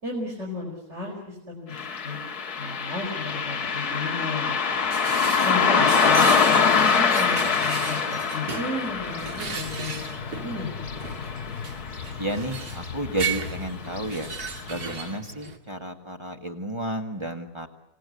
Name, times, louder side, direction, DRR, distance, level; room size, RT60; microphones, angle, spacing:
voice 1, 0.0-2.2 2.6-4.6 5.4-9.9 10.3-10.7, left 2 dB, 45° right, -3 dB, 5.4 m, -33 dB
Car passing by, 1.7-12.5 12.8-12.9 13.9-14.0 14.5-14.6 15.1-15.2, left 5 dB, 75° left, 2.0 m, -24 dB
sound 1, 4.7-15.6, right 5 dB, 75° right, 2.6 m, -36 dB
voice 2, 5.3-5.8 12.2-14.3 14.7-17.7, right 1 dB, 20° right, 4 dB, 1.9 m, -32 dB
sound 2, 8.9-15.1, left 7 dB, 50° left, 1.2 m, -39 dB
27.5 x 18.5 x 8.3 m, 0.85 s
omnidirectional pair, 1.7 m